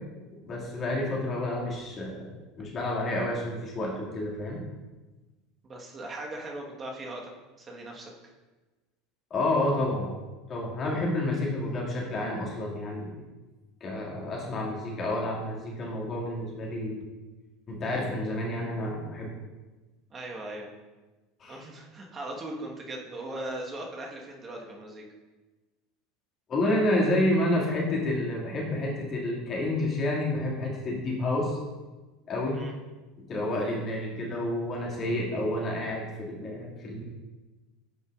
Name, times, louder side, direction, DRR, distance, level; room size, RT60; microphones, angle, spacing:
voice 1, 0.4-2.3 2.6-4.6 9.3-10.1 10.5-13.2 13.8-17.1 17.7-19.3 21.4-21.6 26.5-31.6 32.3-32.6 33.3-37.0, left 1 dB, 40° left, -3 dB, 2.2 m, -29 dB
voice 2, 5.6-7.3 7.6-8.1 20.1-20.7 21.5-25.0 32.5-32.7, right 1 dB, 30° right, 0 dB, 1.3 m, -39 dB
9.8 x 5.5 x 2.5 m, 1.2 s
hypercardioid pair, 80°, 0 cm